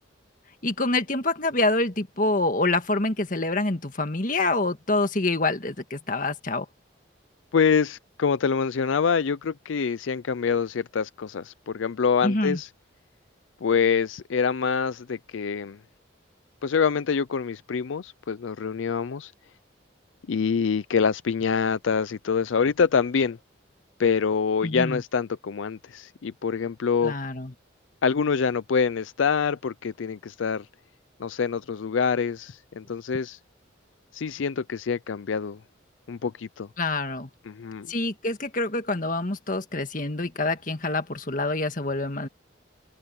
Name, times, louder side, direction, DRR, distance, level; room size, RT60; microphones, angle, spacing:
voice 1, 0.6-6.7 12.2-12.6 24.6-25.0 27.0-27.5 36.8-37.3 37.9-42.3, left 2 dB, 45° left, 1.8 m, -26 dB
voice 2, 7.5-12.7 13.6-15.8 16.6-19.3 20.3-23.4 24.0-27.1 28.0-30.7 31.2-33.4 34.1-35.6 36.1-36.7 37.4-37.9, left 6 dB, 80° left, 0.5 m, -25 dB
head